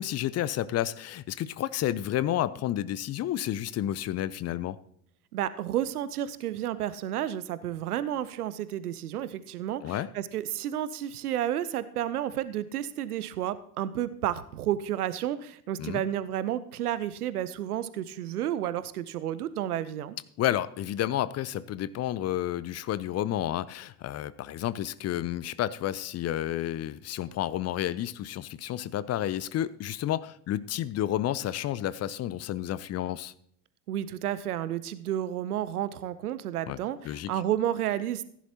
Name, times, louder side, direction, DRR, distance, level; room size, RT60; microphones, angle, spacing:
voice 1, 0.0-4.8 9.8-10.1 15.8-16.0 20.4-33.3 36.7-36.8 37.0-37.3, left 12 dB, 35° left, 18 dB, 0.5 m, -31 dB
voice 2, 5.3-20.2 33.9-38.2, right 11 dB, 80° right, 16 dB, 0.7 m, -31 dB
15.5 x 10.0 x 2.9 m, 0.67 s
figure-of-eight pair, 60°, 45 cm